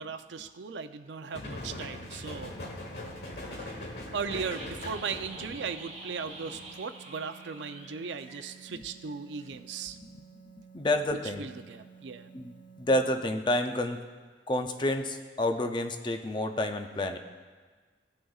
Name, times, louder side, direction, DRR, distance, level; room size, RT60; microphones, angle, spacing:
voice 1, 0.0-2.5 3.6-3.8 4.1-10.0 11.4-12.3, right 5 dB, 85° right, 10 dB, 0.5 m, -37 dB
sound 1, 1.3-6.7, left 1 dB, 65° left, 1.3 m, -41 dB
sound 2, 1.4-12.9, right 6 dB, 80° left, 1.3 m, -54 dB
sound 3, 4.3-9.1 9.4-9.5, right 3 dB, 35° right, 1.3 m, -47 dB
voice 2, 10.7-11.5 12.3-14.0 14.5-17.2, left 1 dB, 25° left, 6 dB, 0.5 m, -29 dB
17.5 x 6.3 x 2.4 m, 1.5 s
head